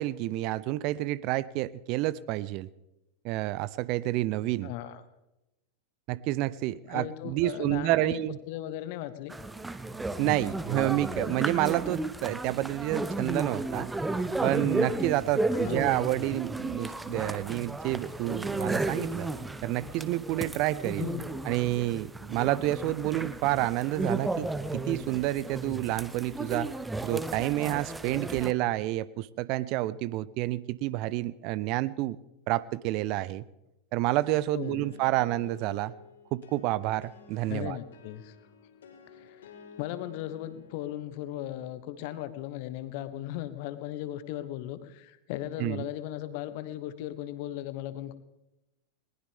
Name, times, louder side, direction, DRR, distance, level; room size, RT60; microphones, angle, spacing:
voice 1, 0.0-2.7 3.2-4.7 6.1-8.4 10.2-13.9 14.4-19.3 19.6-21.1 21.4-24.5 24.7-26.7 27.0-32.2 32.5-33.4 33.9-35.9 36.3-37.8 45.6-45.9, right 16 dB, 40° right, 21 dB, 0.5 m, -29 dB
voice 2, 4.6-5.0 6.9-9.3 15.6-16.0 21.0-21.3 34.5-34.8 37.5-38.3 39.1-39.4 39.8-48.1, left 13 dB, 45° left, 13 dB, 1.1 m, -37 dB
sound 1, 9.3-28.5, right 2 dB, 10° right, 0.8 m, -33 dB
sound 2, 34.6-44.2, left 5 dB, 65° left, 3.4 m, -54 dB
20.5 x 19.0 x 3.5 m, 0.94 s
figure-of-eight pair, 90°, 0 cm